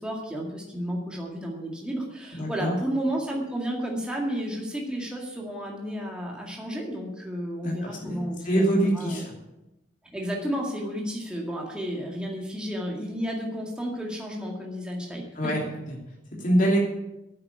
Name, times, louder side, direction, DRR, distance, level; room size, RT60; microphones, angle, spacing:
voice 1, 0.0-8.6 8.9-9.3 10.1-15.3, equal, 5° right, -2 dB, 2.0 m, -32 dB
voice 2, 2.4-2.7 7.6-9.2 15.3-15.9 16.4-16.8, right 1 dB, 45° left, -3 dB, 2.9 m, -25 dB
8.9 x 8.6 x 9.6 m, 0.94 s
head